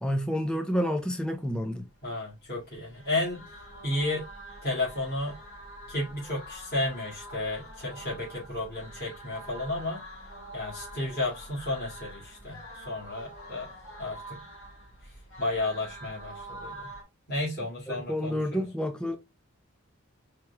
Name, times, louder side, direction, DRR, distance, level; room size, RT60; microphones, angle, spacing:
voice 1, 0.0-1.9 17.9-19.2, equal, 5° left, 0.5 m, -29 dB
voice 2, 2.0-3.4 3.8-4.3 4.6-5.4 5.9-10.0 10.5-13.7 14.0-14.4 15.0-16.9 17.3-18.6, left 2 dB, 45° left, 2.3 m, -32 dB
sound 1, 2.7-17.0, right 1 dB, 65° left, 3.2 m, -46 dB
4.7 x 3.1 x 3.3 m
head